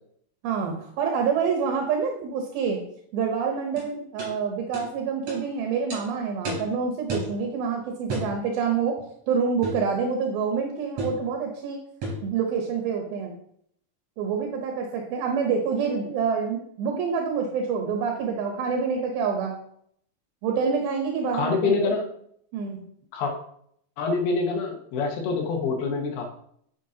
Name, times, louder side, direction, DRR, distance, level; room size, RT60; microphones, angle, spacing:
voice 1, 0.4-2.8 3.1-9.0 9.3-11.8 12.2-13.3 14.2-19.5 20.4-22.0 22.5-22.8, right 6 dB, 80° right, 2 dB, 2.8 m, -27 dB
sound 1, 3.8-3.9 4.2-4.3 4.7-4.9 5.3-5.4 5.9-6.0 6.5-6.7 7.1-7.3 8.1-8.3 9.6-9.9 11.0-11.2 12.0-12.3, right 1 dB, 45° right, 4.5 m, -31 dB
voice 2, 21.3-22.1 23.1-23.3 24.0-26.2, left 4 dB, 85° left, 2 dB, 3.2 m, -25 dB
9.7 x 7.1 x 2.8 m, 0.69 s
omnidirectional pair, 4.3 m